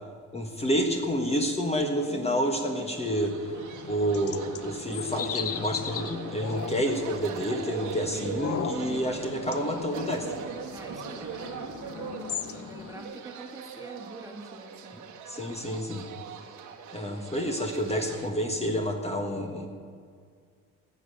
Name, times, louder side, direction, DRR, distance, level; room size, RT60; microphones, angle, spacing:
voice 1, 0.3-3.5 3.9-10.3 15.3-16.1 16.9-19.7, equal, 20° left, 2 dB, 1.5 m, -29 dB
voice 2, 2.1-2.8 8.1-8.7 10.7-15.1 17.0-17.7 19.4-19.5, right 2 dB, 10° right, 2 dB, 1.8 m, -46 dB
sound 1, 2.5-18.3, right 7 dB, 80° right, 1.4 m, -41 dB
sound 2, 3.4-13.0, left 8 dB, 50° left, 0.8 m, -38 dB
14.5 x 6.6 x 9.4 m, 2.1 s
cardioid pair, 90°, 30 cm